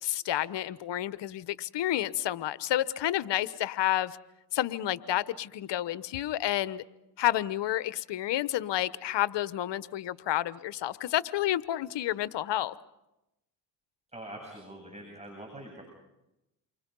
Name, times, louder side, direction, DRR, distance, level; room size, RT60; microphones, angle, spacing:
voice 1, 0.0-4.2 4.5-6.8 7.2-12.7, left 13 dB, 60° left, 15 dB, 1.2 m, -30 dB
voice 2, 14.1-15.8, right 1 dB, 15° right, 1 dB, 8.0 m, -44 dB
29.5 x 24.5 x 5.5 m, 0.91 s
supercardioid pair, 65°, 47 cm